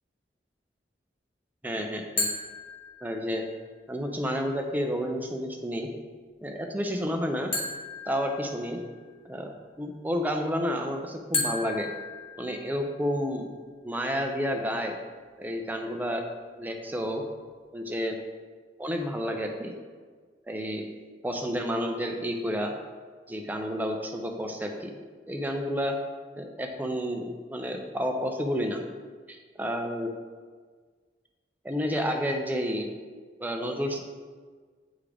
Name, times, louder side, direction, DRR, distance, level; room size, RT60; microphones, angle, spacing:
voice 1, 1.6-2.3 3.0-3.5 3.9-5.9 6.4-7.5 8.1-8.8 9.3-11.9 12.4-13.5 13.8-15.0 15.4-16.2 16.6-17.2 17.7-18.2 18.8-19.7 20.5-20.8 21.2-22.7 23.3-24.9 25.3-26.0 26.4-28.8 29.3-30.1 31.6-32.9 33.4-34.0, equal, 10° right, 3 dB, 0.5 m, -30 dB
sound 1, 2.2-3.5 7.5-9.0 11.3-13.0, left 3 dB, 35° left, 1.3 m, -34 dB
8.3 x 3.7 x 3.3 m, 1.5 s
head